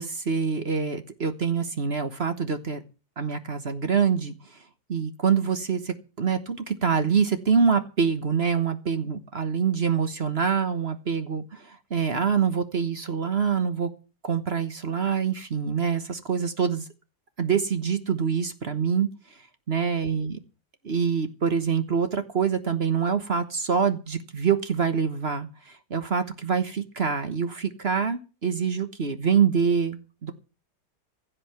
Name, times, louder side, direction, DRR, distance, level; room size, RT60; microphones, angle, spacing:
voice 1, 0.0-2.8 3.2-4.3 4.9-13.9 14.2-16.8 17.4-19.1 19.7-20.4 20.8-30.3, right 6 dB, 40° right, 10 dB, 1.3 m, -25 dB
15.5 x 6.6 x 9.3 m, 0.34 s
omnidirectional pair, 2.0 m